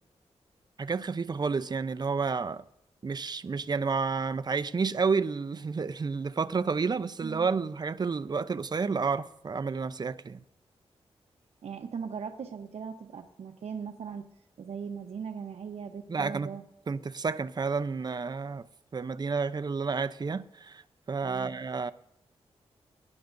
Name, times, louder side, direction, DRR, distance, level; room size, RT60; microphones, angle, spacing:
voice 1, 0.8-2.6 3.0-10.4 16.1-16.5 16.9-18.7 18.9-20.8 21.1-21.9, right 5 dB, 40° right, 0.6 m, -30 dB
voice 2, 7.2-7.5 11.6-14.3 14.6-16.6 21.2-21.5, right 6 dB, 75° right, 0.9 m, -39 dB
23.5 x 11.0 x 2.6 m
cardioid pair, 85°, 11 cm